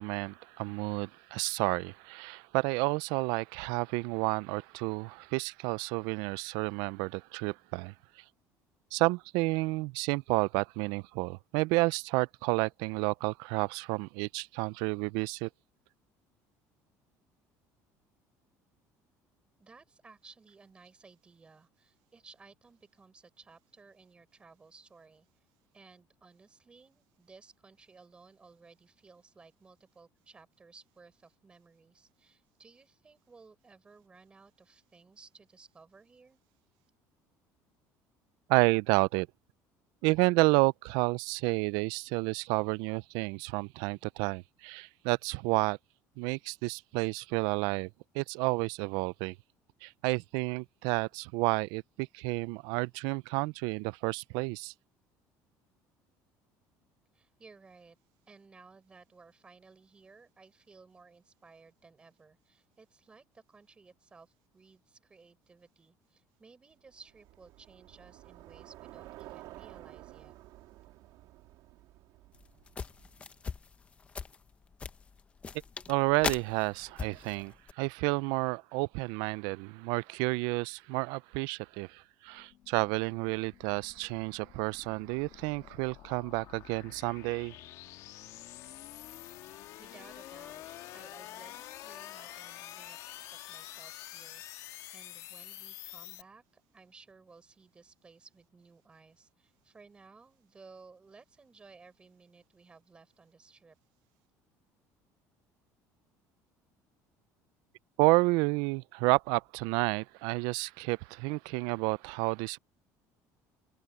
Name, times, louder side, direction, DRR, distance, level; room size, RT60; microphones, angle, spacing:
voice 1, 0.0-7.9 8.9-15.5 38.5-39.3 40.0-45.8 46.2-47.9 48.1-49.4 49.8-54.7 75.9-87.5 108.0-112.6, right 25 dB, 90° right, 0.4 m, -30 dB
voice 2, 19.6-25.3 25.7-36.4 57.1-58.0 58.3-70.3 89.8-90.6 90.9-94.4 94.9-103.8, right 4 dB, 15° right, 6.1 m, -57 dB
Bicycle, 66.9-73.4, right 16 dB, 60° right, 2.8 m, -52 dB
sound 1, 72.3-77.7, left 5 dB, 20° left, 0.8 m, -39 dB
sound 2, 82.3-96.2, left 14 dB, 55° left, 1.5 m, -48 dB
open air
cardioid pair, 175°, 7 cm